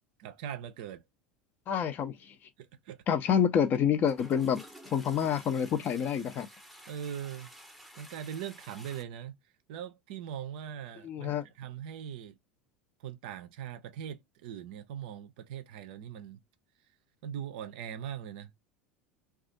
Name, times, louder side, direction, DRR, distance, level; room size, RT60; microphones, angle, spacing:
voice 1, 0.2-1.0 2.6-3.0 6.9-7.5 8.0-9.4 9.7-12.4 13.0-16.4 17.2-18.5, right 9 dB, 55° right, 0.5 m, -41 dB
voice 2, 1.7-2.3 3.1-6.5 11.0-11.4, left 8 dB, 35° left, 0.5 m, -28 dB
Toilet flush, 3.6-3.8 4.0-9.0, equal, ahead, 0.7 m, -52 dB
2.4 x 2.3 x 2.6 m
figure-of-eight pair, 75°, 6 cm